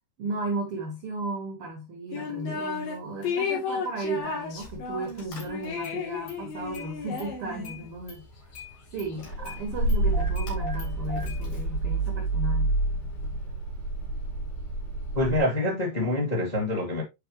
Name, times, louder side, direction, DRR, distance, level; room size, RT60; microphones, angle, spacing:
voice 1, 0.2-8.2 8.9-12.7, right 2 dB, 80° right, 1.2 m, -34 dB
sound 1, 2.1-3.0 3.2-7.9, left 6 dB, 80° left, 4.4 m, -33 dB
Car / Engine starting, 4.6-4.9 5.2-6.0 6.3-7.3 7.6-15.4, right 2 dB, 60° left, 4.0 m, -29 dB
voice 2, 15.1-17.0, left 1 dB, 15° left, 1.3 m, -26 dB
8.7 x 4.5 x 2.9 m
omnidirectional pair, 4.8 m